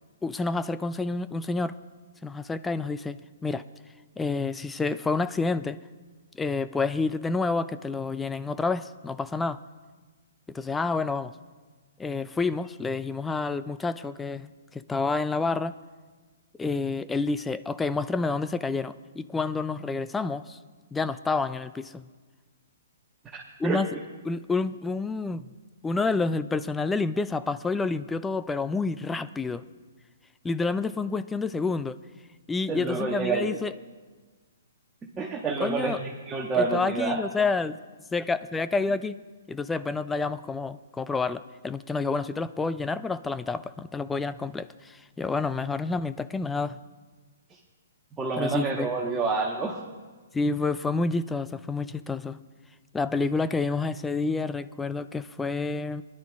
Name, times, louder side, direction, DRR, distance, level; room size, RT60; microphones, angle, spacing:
voice 1, 0.2-1.7 2.2-3.6 4.2-5.8 6.4-9.6 10.5-11.3 12.0-15.7 16.6-20.6 20.9-22.1 23.6-23.9 24.2-25.5 25.8-29.6 30.4-32.0 32.5-33.7 35.6-36.0 36.5-37.8 38.1-39.2 39.5-46.8 48.4-48.9 50.3-52.4 52.9-56.0, left 3 dB, 10° left, 14 dB, 0.3 m, -29 dB
voice 2, 32.7-33.5 35.2-37.2 48.2-49.8, right 4 dB, 15° right, -2 dB, 1.2 m, -28 dB
23.0 x 11.0 x 2.4 m, 1.4 s
hypercardioid pair, 135°, 0 cm